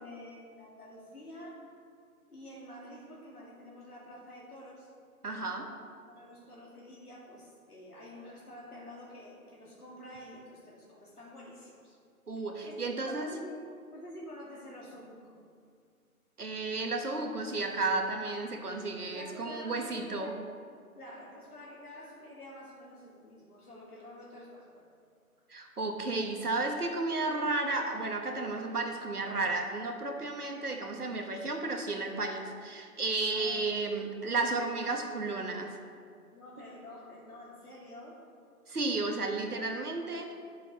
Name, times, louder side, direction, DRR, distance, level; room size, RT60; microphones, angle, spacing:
voice 1, 0.0-1.7 2.3-4.9 5.4-5.7 6.1-12.0 12.6-12.7 13.0-13.6 13.9-15.4 19.1-20.4 20.9-24.9 33.3-33.7 36.3-38.2, left 1 dB, 80° left, -5 dB, 2.4 m, -48 dB
voice 2, 5.2-5.6 12.3-13.3 16.4-20.3 25.5-35.8 38.7-40.3, right 3 dB, 80° right, 4 dB, 1.3 m, -33 dB
11.5 x 8.1 x 3.1 m, 2.2 s
figure-of-eight pair, 150°, 45 cm